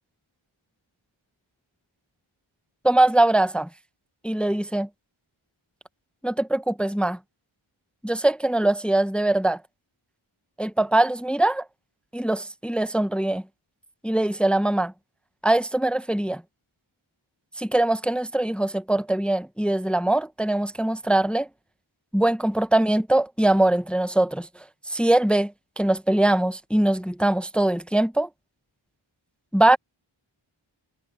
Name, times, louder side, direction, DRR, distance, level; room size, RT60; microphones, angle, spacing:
voice 1, 2.8-3.7 4.2-4.9 6.2-7.2 8.0-9.6 10.6-11.6 12.1-13.4 14.0-14.9 15.4-16.4 17.6-21.5 22.1-24.5 24.9-28.3 29.5-29.8, right 1 dB, ahead, 0.7 m, -22 dB
wide cardioid pair, 45°, 50 cm